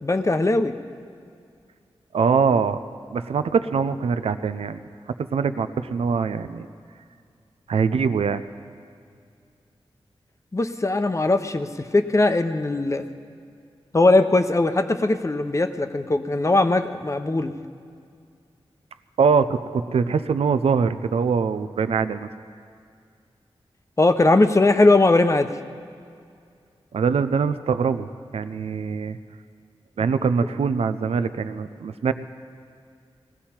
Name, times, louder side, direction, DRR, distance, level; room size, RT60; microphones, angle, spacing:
voice 1, 0.0-0.7 10.5-13.1 13.9-17.5 24.0-25.5, left 2 dB, 30° left, 8 dB, 0.8 m, -20 dB
voice 2, 2.1-2.8 3.1-4.8 5.2-6.7 7.7-8.4 19.2-22.3 26.9-29.2 30.0-32.1, right 5 dB, 90° right, 12 dB, 0.5 m, -23 dB
19.5 x 15.0 x 4.4 m, 2.3 s
cardioid pair, 55°, 10 cm